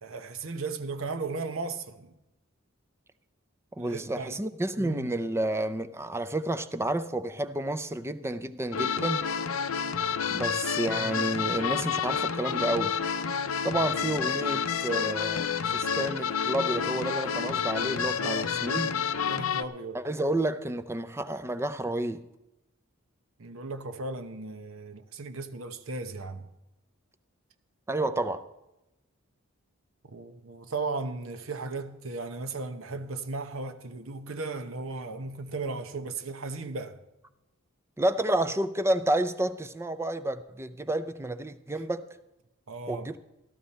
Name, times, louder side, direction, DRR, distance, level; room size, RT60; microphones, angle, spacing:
voice 1, 0.0-2.1 3.8-4.4 4.7-5.1 18.1-18.5 19.3-20.0 23.4-26.5 30.0-37.0 42.7-43.1, right 3 dB, 70° right, 0.9 m, -36 dB
voice 2, 3.8-9.2 10.3-13.0 13.6-18.9 19.9-22.3 27.9-28.4 38.0-42.1 42.9-43.2, right 1 dB, 10° right, 0.5 m, -30 dB
sound 1, 8.7-19.6, left 7 dB, 75° left, 0.6 m, -29 dB
14.0 x 12.5 x 4.2 m
head